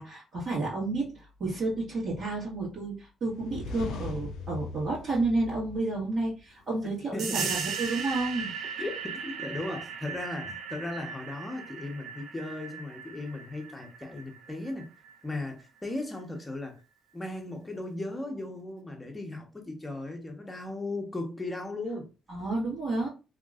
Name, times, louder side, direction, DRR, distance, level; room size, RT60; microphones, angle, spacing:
voice 1, 0.0-8.5 22.3-23.1, right 2 dB, 60° right, 1.4 m, -31 dB
sound 1, 3.3-6.3, left 3 dB, 85° left, 0.4 m, -40 dB
voice 2, 7.1-7.6 8.8-8.9 9.2-14.9 15.2-16.8 17.1-22.1, left 2 dB, 15° left, 0.9 m, -37 dB
sound 2, 7.2-15.5, right 6 dB, 75° right, 0.5 m, -37 dB
3.0 x 2.8 x 2.4 m
cardioid pair, 90°, 0 cm